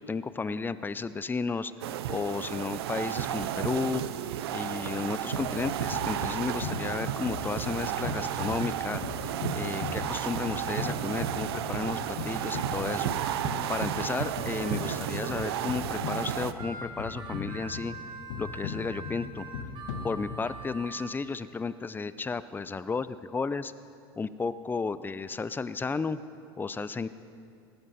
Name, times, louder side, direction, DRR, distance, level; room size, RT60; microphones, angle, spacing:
voice 1, 0.0-1.7 2.1-4.0 4.5-13.1 13.7-17.9 18.4-19.5 20.0-23.7 24.2-26.2 26.6-27.1, left 4 dB, 15° left, 15 dB, 0.5 m, -33 dB
sound 1, 1.8-16.5, right 11 dB, 75° right, 0.6 m, -33 dB
sound 2, 5.3-20.7, left 5 dB, 70° left, 1.6 m, -39 dB
Harmonica, 12.0-15.5 16.0-21.1, right 4 dB, 35° right, 2.6 m, -45 dB
18.5 x 13.5 x 4.2 m, 2.4 s
hypercardioid pair, 90°, 13 cm